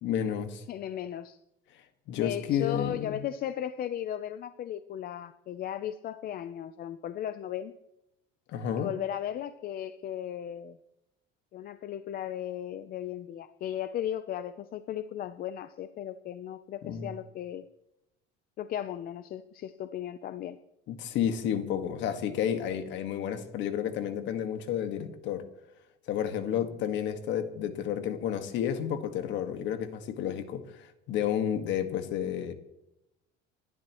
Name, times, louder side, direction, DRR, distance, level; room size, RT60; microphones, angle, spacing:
voice 1, 0.0-0.6 2.1-3.2 8.5-8.9 16.8-17.1 20.9-25.4 26.1-32.5, left 9 dB, 60° left, 8 dB, 1.8 m, -31 dB
voice 2, 0.7-1.4 2.1-7.7 8.8-10.8 11.5-17.6 18.6-20.6, left 11 dB, 45° left, 12 dB, 0.7 m, -36 dB
27.5 x 12.0 x 3.1 m, 0.87 s
cardioid pair, 125°, 21 cm